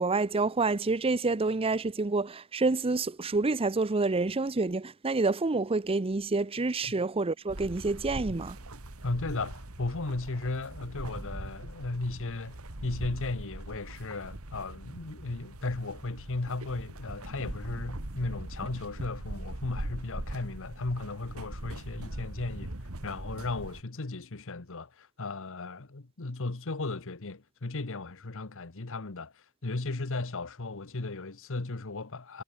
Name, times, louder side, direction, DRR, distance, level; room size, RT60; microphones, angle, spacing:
voice 1, 0.0-8.6, right 3 dB, 25° right, 0.6 m, -28 dB
sound 1, 7.5-23.8, right 1 dB, 75° right, 2.5 m, -41 dB
voice 2, 9.0-22.7 23.0-32.4, left 2 dB, 65° left, 1.2 m, -36 dB
head